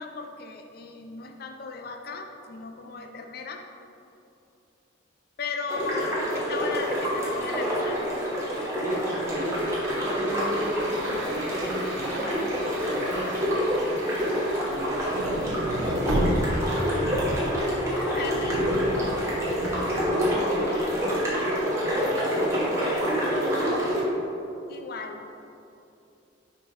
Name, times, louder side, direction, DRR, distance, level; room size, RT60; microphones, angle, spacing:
voice 1, 0.0-3.7 5.4-8.0 17.9-18.7 24.7-25.2, left 4 dB, 50° left, 4 dB, 0.4 m, -36 dB
sound 1, 5.7-24.0, equal, 15° right, 1.2 m, -27 dB
voice 2, 8.8-12.3 12.9-13.4 13.8-14.2 14.5-17.3 19.5-24.0, right 1 dB, 35° right, -1 dB, 0.8 m, -37 dB
sound 2, 9.3-19.8 20.1-20.2, right 1 dB, 65° right, 1.5 m, -42 dB
sound 3, 14.7-21.0, equal, 80° right, 1.0 m, -32 dB
5.1 x 4.3 x 5.2 m, 2.7 s
head